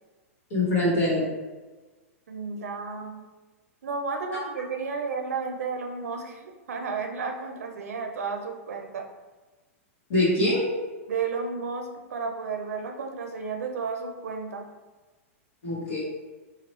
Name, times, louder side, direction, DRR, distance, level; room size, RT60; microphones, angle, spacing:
voice 1, 0.5-1.2 10.1-10.7 15.6-16.0, left 1 dB, 65° left, -7 dB, 1.1 m, -23 dB
voice 2, 2.3-3.2 3.8-9.1 11.1-14.6, right 4 dB, 90° right, 3 dB, 0.4 m, -32 dB
2.9 x 2.4 x 3.1 m, 1.2 s
hypercardioid pair, 135°, 8 cm